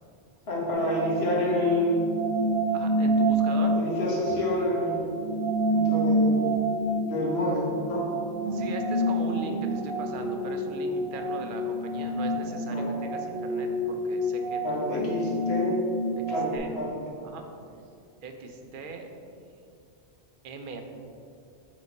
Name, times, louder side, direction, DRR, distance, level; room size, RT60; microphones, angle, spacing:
voice 1, 0.5-2.1 3.5-5.2 5.7-6.4 7.0-8.1 12.7-12.9 14.6-15.8 16.3-16.9, left 1 dB, 70° left, -4 dB, 1.5 m, -28 dB
sound 1, 0.7-16.6, right 1 dB, 75° right, 1.3 m, -28 dB
voice 2, 2.7-3.7 8.5-15.2 16.2-16.7 17.2-17.4 18.2-19.1 20.4-20.8, right 4 dB, 55° right, 5 dB, 0.7 m, -40 dB
5.2 x 4.0 x 5.2 m, 2.4 s
omnidirectional pair, 1.1 m